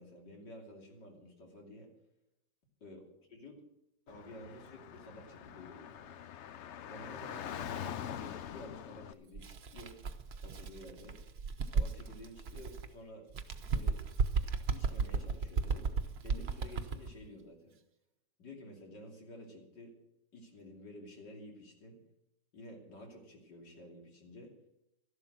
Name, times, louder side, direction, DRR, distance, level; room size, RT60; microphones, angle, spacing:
voice 1, 0.0-1.9 2.8-3.6 4.1-6.2 6.9-10.0 10.4-11.2 11.7-13.3 13.7-14.0 14.7-15.9 16.2-17.8 18.4-20.0 20.3-22.0 22.5-24.5, left 1 dB, 90° left, 1 dB, 3.5 m, -51 dB
Car / Traffic noise roadway noise, 4.1-9.1, left 9 dB, 65° left, 0.7 m, -44 dB
Bird, 9.3-12.9 13.3-17.1, right 5 dB, 45° right, 0.9 m, -35 dB
13.5 x 11.5 x 6.2 m, 0.84 s
omnidirectional pair, 1.8 m